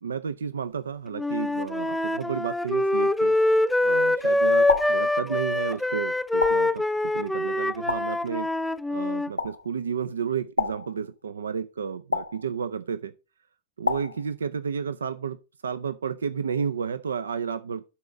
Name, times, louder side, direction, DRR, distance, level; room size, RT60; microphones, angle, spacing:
voice 1, 0.0-3.4 3.8-13.1 13.8-17.8, right 6 dB, 70° right, 0.5 m, -32 dB
Wind instrument woodwind instrument, 1.2-9.3, left 2 dB, 5° left, 0.4 m, -24 dB
sound 1, 4.7-5.1 6.4-6.8 7.9-8.2 9.4-9.7 10.6-11.0 12.1-12.5 13.9-14.3, left 3 dB, 85° left, 0.7 m, -28 dB
11.5 x 4.2 x 5.1 m
figure-of-eight pair, 90°, 0 cm